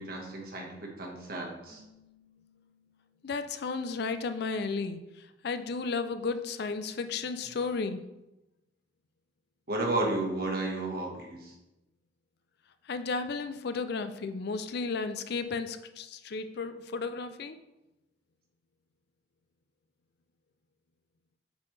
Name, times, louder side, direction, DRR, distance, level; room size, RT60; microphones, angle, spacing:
voice 1, 0.0-1.8 9.7-11.5, right 2 dB, 55° right, 0 dB, 1.4 m, -33 dB
Keyboard (musical), 1.7-3.7, left 2 dB, 10° left, 1.0 m, -62 dB
voice 2, 3.2-5.0 5.4-8.0 12.9-17.6, left 4 dB, 60° left, 10 dB, 0.4 m, -33 dB
8.0 x 4.2 x 3.2 m, 0.97 s
head